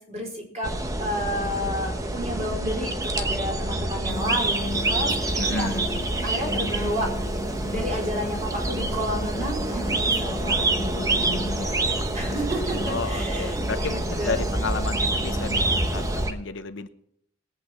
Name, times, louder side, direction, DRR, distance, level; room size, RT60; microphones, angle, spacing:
voice 1, 0.1-0.7 1.0-5.8 6.2-7.1 7.7-14.5, equal, 35° right, -1 dB, 4.6 m, -31 dB
sound 1, 0.6-16.3, right 2 dB, 15° right, 1.0 m, -27 dB
sound 2, 4.1-16.3, left 1 dB, 40° left, 0.9 m, -37 dB
voice 2, 5.4-5.9 12.8-16.9, left 4 dB, 70° left, 9 dB, 0.9 m, -32 dB
20.0 x 8.5 x 4.4 m, 0.70 s
head